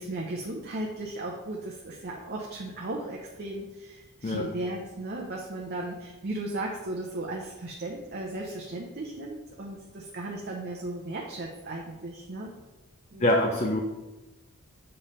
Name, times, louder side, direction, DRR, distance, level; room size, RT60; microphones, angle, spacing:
voice 1, 0.0-12.5 13.1-13.3, right 2 dB, 50° right, -1 dB, 0.8 m, -36 dB
voice 2, 13.2-13.8, left 1 dB, 30° left, 1 dB, 0.6 m, -24 dB
7.0 x 3.3 x 5.5 m, 1.1 s
head